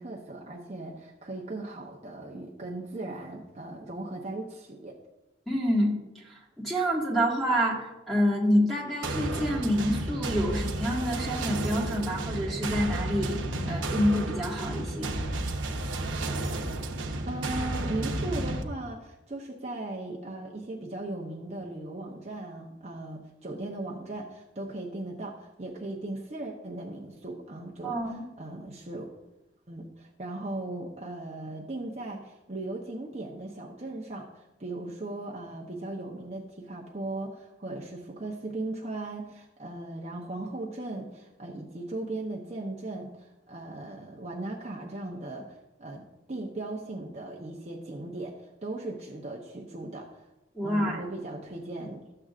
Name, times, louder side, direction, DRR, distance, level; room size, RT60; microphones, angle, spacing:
voice 1, 0.0-4.9 17.3-29.1 29.7-50.3 50.6-52.0, right 2 dB, 35° right, -2 dB, 0.8 m, -38 dB
voice 2, 5.5-6.0 6.2-13.4 13.6-15.2 27.8-28.3 50.6-51.0, equal, ahead, -4 dB, 1.7 m, -27 dB
sound 1, 9.0-18.6, right 2 dB, 90° right, 0.9 m, -32 dB
13.0 x 7.7 x 2.5 m, 1.0 s
head